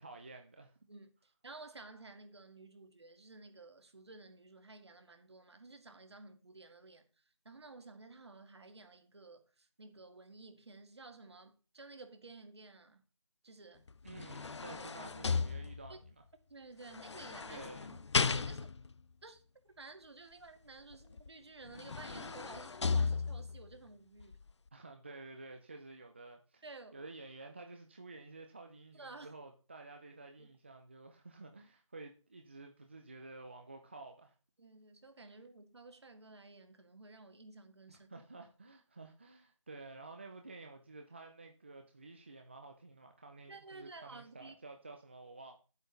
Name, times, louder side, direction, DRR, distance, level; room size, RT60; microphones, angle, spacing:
voice 1, 0.0-0.8 14.0-16.2 17.5-18.0 24.7-26.6 26.9-34.3 37.9-45.5, right 3 dB, 20° right, 0.6 m, -51 dB
voice 2, 0.9-13.0 13.4-13.9 14.6-15.2 15.9-16.0 16.5-18.7 19.2-19.4 19.8-24.4 26.6-27.0 28.9-29.3 30.4-30.5 34.6-38.1 43.5-44.5, right 3 dB, 55° right, 2.0 m, -53 dB
sound 1, 13.9-16.1 16.9-18.9 21.2-21.3 21.7-23.7 24.2-24.3, left 4 dB, 60° left, 0.5 m, -35 dB
9.1 x 8.0 x 3.9 m
figure-of-eight pair, 170°, 16 cm